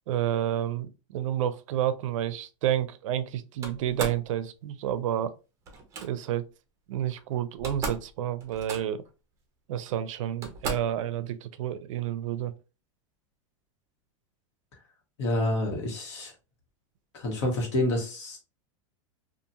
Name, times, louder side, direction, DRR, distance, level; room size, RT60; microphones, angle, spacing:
voice 1, 0.1-5.3 6.0-6.5 6.9-9.0 9.7-12.5, right 11 dB, 90° right, 0.4 m, -30 dB
Slam, 3.6-4.3 5.7-6.1 7.2-7.3 7.5-8.1 8.4-9.1 9.9-10.0 10.4-11.0, right 3 dB, 20° right, 0.5 m, -36 dB
voice 2, 15.2-16.3 17.1-18.4, left 1 dB, 65° left, 1.3 m, -28 dB
2.7 x 2.4 x 2.6 m
supercardioid pair, 160°, 16 cm